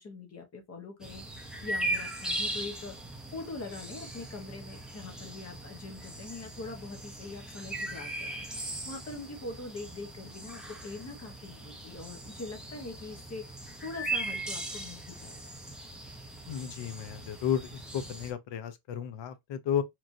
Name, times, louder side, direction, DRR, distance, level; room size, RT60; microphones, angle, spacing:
voice 1, 0.0-3.0 3.3-15.4, left 3 dB, 30° left, 0.9 m, -43 dB
sound 1, 1.0-18.3, right 2 dB, ahead, 0.4 m, -39 dB
voice 2, 16.5-19.8, left 9 dB, 60° left, 0.6 m, -33 dB
3.0 x 2.5 x 2.5 m
cardioid pair, 155°, 50 cm